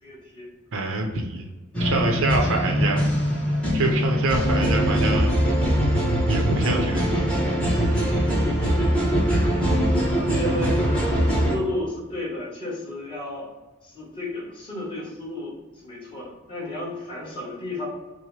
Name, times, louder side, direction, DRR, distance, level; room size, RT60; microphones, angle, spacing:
voice 1, 0.0-0.5 4.2-4.5 8.5-8.8 9.3-9.6 10.1-13.5 13.8-17.9, left 1 dB, 25° left, -6 dB, 1.4 m, -33 dB
voice 2, 0.7-1.5 1.8-3.1 3.7-5.3 6.3-7.5, right 2 dB, 65° right, 2 dB, 0.6 m, -26 dB
sound 1, 1.7-11.6, equal, 5° left, 1.0 m, -22 dB
5.8 x 2.1 x 3.2 m, 1.2 s
head